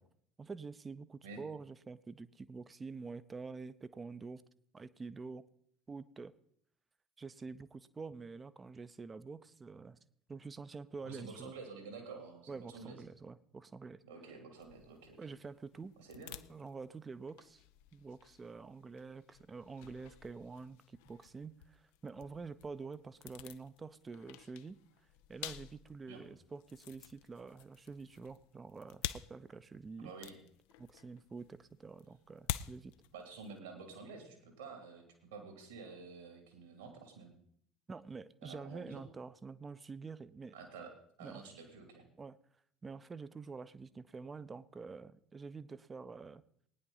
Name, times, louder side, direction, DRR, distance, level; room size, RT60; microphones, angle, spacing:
voice 1, 0.4-4.4 4.7-5.4 5.9-6.3 7.2-10.0 10.3-11.5 12.5-14.0 15.2-15.9 16.5-17.6 17.9-24.8 25.3-30.1 30.8-32.9 37.9-40.5 41.2-41.4 42.2-42.4 42.8-46.4, right 4 dB, 20° right, 15 dB, 0.6 m, -47 dB
voice 2, 11.0-13.0 14.0-15.2 16.0-16.4 26.1-26.3 30.0-30.4 33.1-37.3 38.4-39.0 40.5-40.9 41.2-42.1, right 4 dB, 75° right, 3 dB, 2.7 m, -50 dB
sound 1, 14.6-33.6, left 13 dB, 60° left, 0.5 m, -49 dB
20.0 x 9.7 x 4.0 m, 0.69 s
figure-of-eight pair, 65°, 0 cm